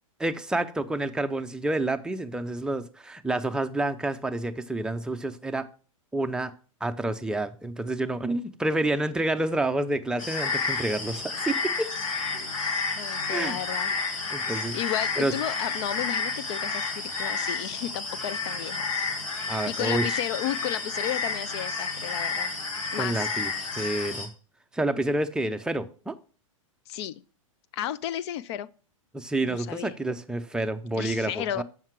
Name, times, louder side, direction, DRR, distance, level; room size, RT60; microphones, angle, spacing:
voice 1, 0.2-5.7 6.1-6.5 6.8-11.9 13.3-13.6 14.3-14.8 15.2-15.3 19.5-20.1 23.0-24.3 24.7-26.1 29.1-31.6, right 2 dB, 5° right, 0.5 m, -29 dB
sound 1, 10.2-24.3, left 4 dB, 70° left, 1.8 m, -30 dB
voice 2, 13.0-13.9 14.7-18.9 19.7-22.5 22.9-23.3 26.9-27.2 27.7-28.7 29.4-29.9 31.0-31.6, left 12 dB, 50° left, 0.5 m, -33 dB
7.2 x 5.9 x 4.6 m
hypercardioid pair, 110°, 18 cm